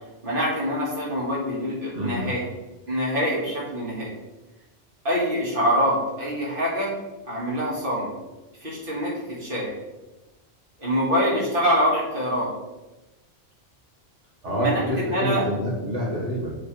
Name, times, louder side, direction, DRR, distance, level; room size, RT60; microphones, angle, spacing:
voice 1, 0.2-2.4 2.9-4.1 5.0-6.9 7.2-8.1 8.6-9.7 10.8-12.5 14.6-15.4, equal, 50° right, -6 dB, 2.2 m, -25 dB
voice 2, 1.9-2.3 14.4-16.6, equal, 90° right, -4 dB, 2.0 m, -27 dB
6.8 x 5.8 x 3.3 m, 1.1 s
omnidirectional pair, 1.2 m